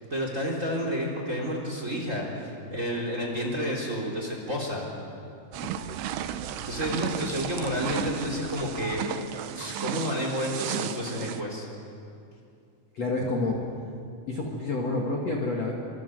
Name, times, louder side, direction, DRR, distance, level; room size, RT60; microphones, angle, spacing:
voice 1, 0.1-4.9 6.6-9.0 9.5-11.7, equal, 20° right, 0 dB, 3.5 m, -30 dB
voice 2, 5.5-5.9 12.9-13.6 14.3-15.7, left 2 dB, 45° left, -1 dB, 2.7 m, -29 dB
sound 1, 5.5-11.4, right 10 dB, 75° right, 2.9 m, -34 dB
26.0 x 25.5 x 8.0 m, 2.5 s
omnidirectional pair, 5.0 m